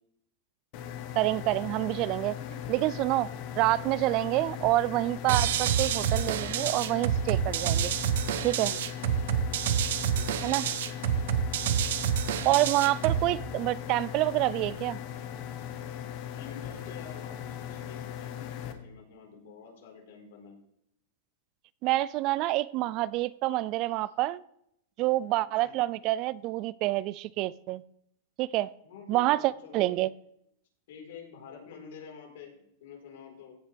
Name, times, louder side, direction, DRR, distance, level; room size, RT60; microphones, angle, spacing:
sound 1, 0.7-18.7, left 9 dB, 45° left, 1.2 m, -39 dB
voice 1, 1.2-3.3 3.6-7.9 8.4-8.7 10.4-10.6 12.4-15.0 21.8-24.4 25.0-27.8 28.4-28.7 29.1-30.1, right 17 dB, 40° right, 20 dB, 0.3 m, -27 dB
voice 2, 2.8-3.1 8.2-10.6 11.6-12.0 16.3-20.6 25.6-25.8 28.8-30.0 30.9-33.5, left 6 dB, 70° left, 0 dB, 4.2 m, -49 dB
sound 2, 5.3-13.3, right 9 dB, 70° right, 0.8 m, -28 dB
15.5 x 7.2 x 3.4 m, 0.75 s
supercardioid pair, 150°, 0 cm